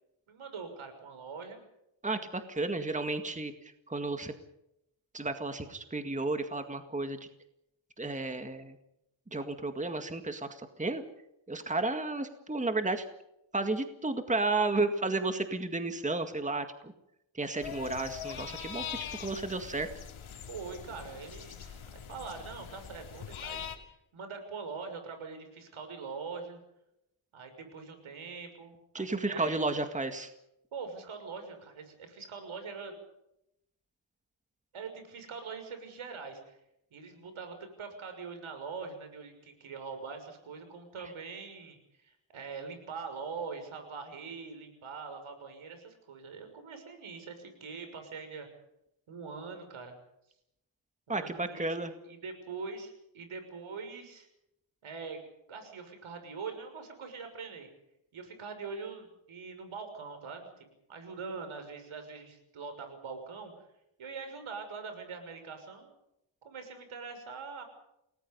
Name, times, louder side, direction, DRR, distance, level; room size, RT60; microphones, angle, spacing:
voice 1, 0.3-1.6 2.6-3.3 20.5-21.8 22.1-26.6 27.3-29.6 30.7-32.9 34.7-36.6 36.9-48.5 49.1-50.0 51.1-54.3 54.8-55.2 55.5-57.7 58.1-60.6 60.9-63.7 64.0-65.9 66.4-67.6, right 5 dB, 85° right, 7 dB, 6.4 m, -43 dB
voice 2, 2.0-3.5 3.9-4.3 5.1-7.2 8.0-8.7 9.3-10.5 10.8-11.0 11.5-13.0 13.5-16.9 17.4-18.8 19.2-19.9 28.9-30.3 51.1-51.9, right 2 dB, 15° right, 7 dB, 2.0 m, -32 dB
sound 1, 17.6-23.8, left 8 dB, 90° left, 2.8 m, -42 dB
29.0 x 19.5 x 5.5 m, 0.83 s
wide cardioid pair, 115°, 48 cm